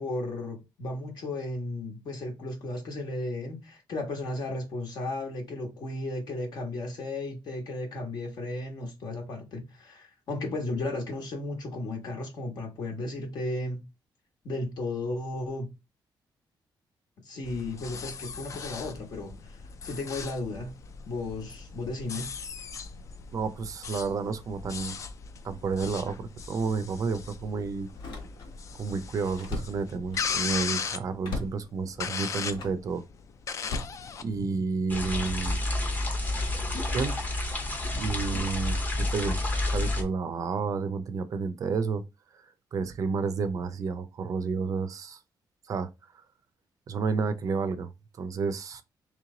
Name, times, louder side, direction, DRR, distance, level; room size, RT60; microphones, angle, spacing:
voice 1, 0.0-13.8 14.4-15.7 17.2-20.7 21.0-22.3, left 2 dB, 60° left, 1.2 m, -34 dB
sound 1, 17.4-34.4, left 6 dB, 40° left, 0.4 m, -38 dB
voice 2, 23.3-24.9 25.4-27.9 28.8-33.0 34.2-35.6 36.9-37.2 37.9-42.0 42.4-45.2 45.7-45.9 46.9-47.9 48.2-48.8, right 4 dB, 45° right, 0.5 m, -31 dB
Slam, 26.4-26.6 27.9-28.7 29.0-30.6 31.2-31.7 32.4-32.9 33.6-34.7 35.3-35.6, left 3 dB, 80° left, 1.4 m, -38 dB
sound 2, 34.9-40.0, left 2 dB, 20° left, 0.8 m, -29 dB
3.1 x 3.1 x 3.7 m
wide cardioid pair, 170°, 8 cm